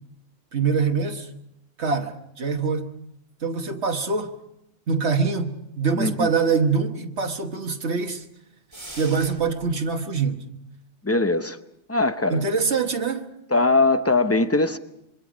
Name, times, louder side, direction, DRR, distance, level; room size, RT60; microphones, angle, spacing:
voice 1, 0.5-1.3 1.8-2.9 3.4-4.3 4.9-8.2 9.0-10.4 12.3-13.3, right 5 dB, 65° right, 5 dB, 1.6 m, -24 dB
voice 2, 6.0-6.3 11.0-11.6 11.9-12.4 13.5-14.8, left 2 dB, 15° left, 10 dB, 0.6 m, -21 dB
sound 1, 8.7-9.7, right 1 dB, 25° right, 1.9 m, -41 dB
26.0 x 22.5 x 5.1 m, 0.82 s
omnidirectional pair, 1.3 m